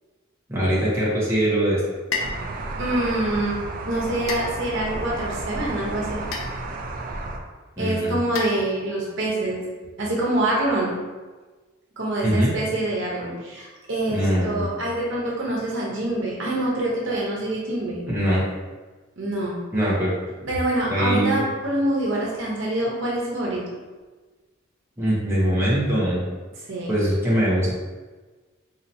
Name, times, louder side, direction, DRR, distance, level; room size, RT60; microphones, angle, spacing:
voice 1, 0.5-1.8 7.8-8.2 12.2-12.5 14.1-14.6 18.1-18.4 19.7-20.1 20.9-21.4 25.0-26.2 26.9-27.7, right 1 dB, 10° right, -8 dB, 0.8 m, -22 dB
sound 1, 2.1-2.5 4.3-4.9 6.3-6.8 8.4-9.0, left 4 dB, 70° left, 0.5 m, -31 dB
sound 2, 2.2-7.4, right 2 dB, 45° right, 0.4 m, -32 dB
voice 2, 2.8-6.2 7.8-9.6 10.0-11.0 12.0-18.1 19.2-19.6 20.4-23.6 26.7-27.0, right 1 dB, 60° right, -4 dB, 0.9 m, -25 dB
4.1 x 2.9 x 2.7 m, 1.3 s
head